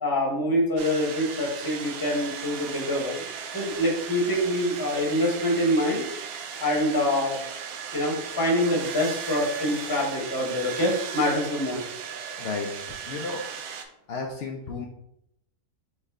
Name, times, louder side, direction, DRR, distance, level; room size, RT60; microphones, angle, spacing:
voice 1, 0.0-3.2 3.5-6.0 6.6-7.4 7.9-11.8, left 1 dB, 15° left, -2 dB, 0.9 m, -25 dB
sound 1, 0.8-13.9, right 7 dB, 70° right, 1.0 m, -37 dB
voice 2, 12.4-12.7 13.1-13.4 14.1-14.9, left 4 dB, 80° left, 1 dB, 0.5 m, -32 dB
4.3 x 3.2 x 3.5 m, 0.77 s
omnidirectional pair, 1.7 m